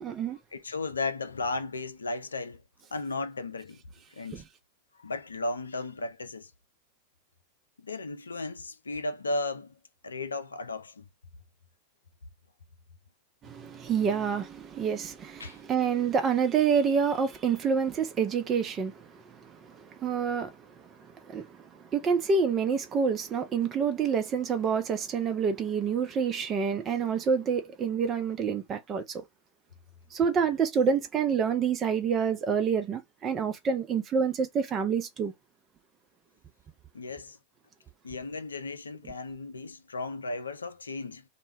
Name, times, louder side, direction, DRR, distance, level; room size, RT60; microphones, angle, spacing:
voice 1, 0.0-0.4 13.4-20.6 21.3-29.2 30.1-35.3, right 6 dB, 25° right, 0.6 m, -28 dB
voice 2, 0.5-2.6 2.9-3.8 4.1-4.4 4.9-6.5 7.8-11.1 15.4-15.6 36.9-37.4 38.0-41.2, left 3 dB, 75° left, 0.3 m, -35 dB
2.2 x 2.1 x 3.3 m
figure-of-eight pair, 90°, 0 cm